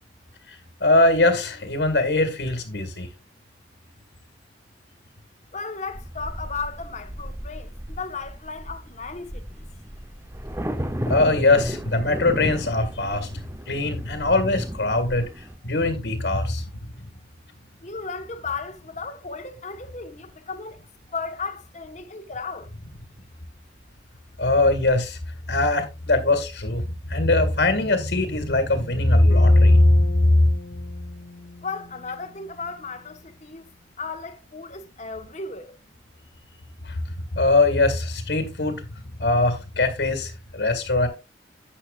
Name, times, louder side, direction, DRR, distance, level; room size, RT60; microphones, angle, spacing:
voice 1, 0.5-3.1 11.1-17.1 24.4-25.2 25.5-30.5 36.8-38.8 39.2-41.1, left 2 dB, 80° left, 1.9 m, -21 dB
voice 2, 5.5-9.6 17.8-20.8 21.1-22.7 31.6-33.7 34.0-35.8, left 4 dB, 40° left, 1.3 m, -35 dB
sound 1, 5.9-15.6, equal, 15° right, 0.9 m, -34 dB
Bass guitar, 29.3-33.4, left 3 dB, 65° left, 1.1 m, -40 dB
12.0 x 8.5 x 2.5 m
head